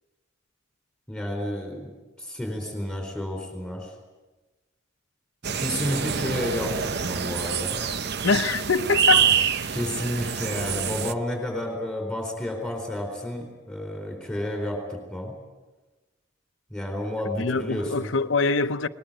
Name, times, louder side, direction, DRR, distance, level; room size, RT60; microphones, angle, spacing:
voice 1, 1.1-1.9 2.2-3.9 5.4-7.8 9.7-15.4 16.7-18.2, left 1 dB, 5° left, 4.2 m, -31 dB
sound 1, 5.4-11.1, right 7 dB, 60° right, 0.8 m, -26 dB
voice 2, 8.2-9.3 17.4-18.9, left 4 dB, 75° left, 0.9 m, -24 dB
20.5 x 20.0 x 9.1 m
head